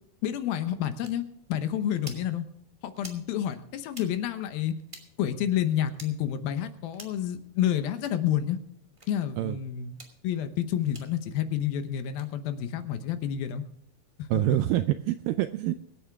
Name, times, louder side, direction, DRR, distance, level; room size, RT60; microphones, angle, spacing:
voice 1, 0.2-1.2 1.5-2.4 2.8-4.7 5.2-8.6 9.1-10.0 10.2-13.6 14.2-14.6, left 10 dB, 75° left, 9 dB, 2.7 m, -29 dB
sound 1, 1.0-1.1 1.9-2.2 3.0-3.2 3.9-4.1 4.9-5.0 5.9-6.1 6.9-7.2 7.9-8.1 9.0-9.1 9.9-10.1 10.9-11.0 12.0-12.3, right 1 dB, 15° right, 1.2 m, -46 dB
voice 2, 14.3-15.7, right 14 dB, 85° right, 10 dB, 2.0 m, -26 dB
24.5 x 8.7 x 3.5 m, 0.73 s
omnidirectional pair, 4.5 m